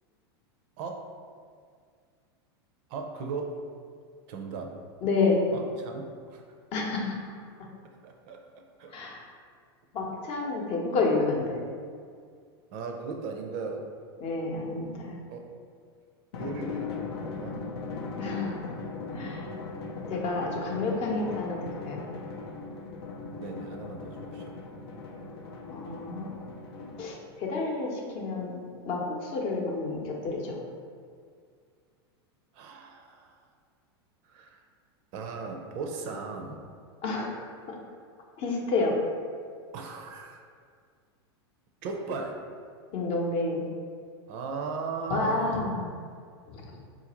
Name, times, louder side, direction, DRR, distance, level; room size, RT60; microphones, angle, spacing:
voice 1, 2.9-3.6 4.3-4.7 5.5-6.4 8.0-8.9 12.7-13.9 15.3-15.5 16.3-17.6 23.3-24.4 32.5-33.4 34.2-34.6 35.1-36.6 39.7-40.4 41.8-42.4 44.3-45.6, right 4 dB, 55° right, 3 dB, 0.5 m, -37 dB
voice 2, 5.0-5.4 6.7-7.7 8.9-9.2 9.9-11.6 14.2-15.2 18.2-18.8 19.1-19.5 20.1-21.6 21.9-22.0 25.7-26.3 27.0-28.6 28.8-30.6 37.0-37.4 37.7-37.8 38.4-39.0 42.9-43.7 45.1-45.9 46.5-46.6, left 3 dB, 45° left, -1 dB, 0.7 m, -30 dB
Drum, 16.3-27.3, left 4 dB, 80° left, 0.5 m, -39 dB
3.8 x 2.5 x 2.9 m, 2.1 s
hypercardioid pair, 110°, 13 cm